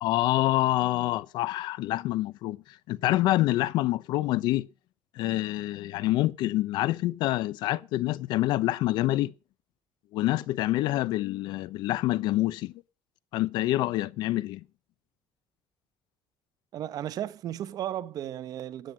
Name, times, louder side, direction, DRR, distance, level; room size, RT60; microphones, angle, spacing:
voice 1, 0.0-2.6 2.9-4.7 5.1-9.3 10.1-12.7 13.3-14.6, left 16 dB, 80° left, 0.8 m, -26 dB
voice 2, 16.7-18.9, right 11 dB, 55° right, 1.1 m, -35 dB
14.0 x 9.9 x 6.2 m
cardioid pair, 130°, 8 cm